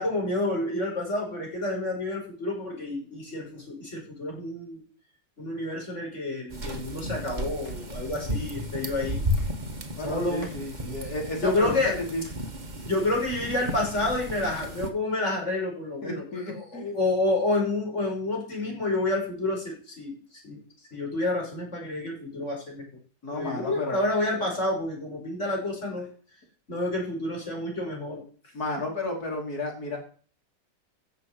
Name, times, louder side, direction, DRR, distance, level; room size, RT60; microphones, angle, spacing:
voice 1, 0.0-4.8 5.4-9.2 10.0-10.5 11.4-11.9 12.9-20.2 20.4-20.6 20.9-22.9 23.3-26.1 26.7-28.2, left 2 dB, 40° left, 0 dB, 6.2 m, -29 dB
sound 1, 6.5-14.9, equal, 25° right, 1.8 m, -34 dB
voice 2, 10.0-12.2 16.0-16.9 23.2-24.0 28.5-30.0, left 2 dB, 60° left, 0 dB, 5.4 m, -32 dB
14.5 x 7.0 x 8.2 m, 0.42 s
omnidirectional pair, 1.8 m